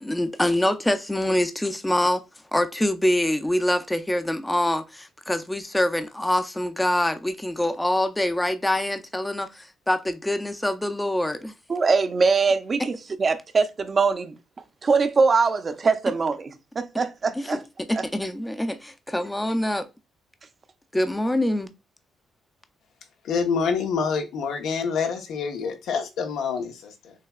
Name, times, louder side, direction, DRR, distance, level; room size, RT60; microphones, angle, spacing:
voice 1, 0.0-2.2 2.5-11.5 17.3-17.6 17.9-19.9 20.9-21.7, left 1 dB, 10° left, 0.5 m, -25 dB
voice 2, 11.7-12.9 13.2-14.3 14.8-16.5 16.8-17.6 17.9-18.0, right 4 dB, 40° right, 0.6 m, -22 dB
voice 3, 23.2-27.1, left 5 dB, 80° left, 0.9 m, -27 dB
6.5 x 2.3 x 2.4 m
cardioid pair, 90°, 0 cm